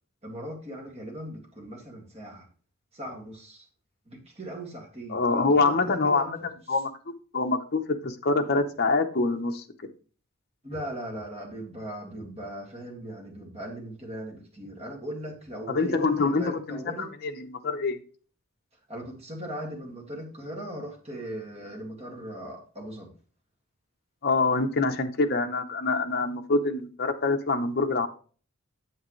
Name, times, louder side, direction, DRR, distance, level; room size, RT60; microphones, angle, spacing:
voice 1, 0.2-2.5 2.9-3.7 4.1-6.4 6.7-6.8 10.6-17.1 18.9-23.1, right 1 dB, 30° right, 2.1 m, -39 dB
voice 2, 5.1-6.4 6.7-9.6 15.7-18.0 24.2-28.1, left 3 dB, 45° left, 0.8 m, -25 dB
8.7 x 7.3 x 3.2 m
head